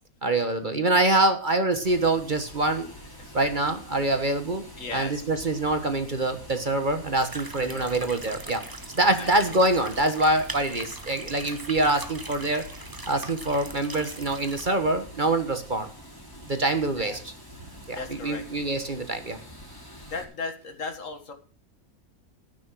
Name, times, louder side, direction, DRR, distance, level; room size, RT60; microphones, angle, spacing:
voice 1, 0.2-2.9 3.3-4.6 4.9-8.6 8.9-12.7 13.1-15.9 16.4-17.2 17.9-19.4, right 2 dB, 35° right, 8 dB, 1.4 m, -25 dB
Water, 1.8-20.2, equal, 15° left, 3.4 m, -46 dB
voice 2, 4.8-5.2 7.6-8.0 9.2-9.3 15.8-15.9 17.0-17.2 17.9-18.4 20.0-21.3, left 4 dB, 60° left, 7 dB, 1.9 m, -36 dB
sound 1, 7.2-14.7, right 2 dB, 15° right, 1.0 m, -41 dB
13.5 x 9.2 x 6.2 m, 0.40 s
omnidirectional pair, 1.5 m